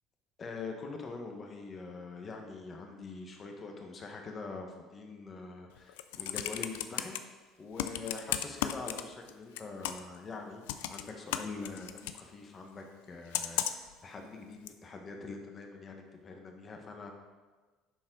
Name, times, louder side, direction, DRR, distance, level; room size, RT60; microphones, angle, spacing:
voice 1, 0.4-7.2 7.6-10.6 10.9-17.1, left 4 dB, 35° left, 3 dB, 1.5 m, -44 dB
Computer keyboard, 5.8-7.2 7.8-9.3 9.6-10.2 10.7-12.2 13.3-13.9 14.7-14.8, left 12 dB, 85° left, 0.4 m, -34 dB
11.0 x 4.3 x 3.9 m, 1.3 s
supercardioid pair, 80°, 0 cm